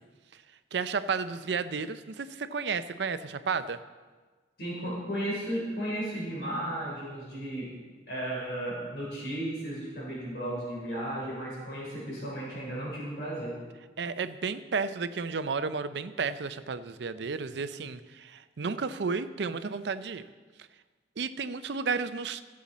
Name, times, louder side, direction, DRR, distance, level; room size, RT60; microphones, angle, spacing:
voice 1, 0.7-3.8 14.0-20.3 21.2-22.4, right 5 dB, 75° right, 12 dB, 0.5 m, -32 dB
voice 2, 4.6-7.7 8.1-13.6, right 1 dB, 65° left, -4 dB, 4.1 m, -34 dB
15.5 x 7.6 x 4.2 m, 1.4 s
head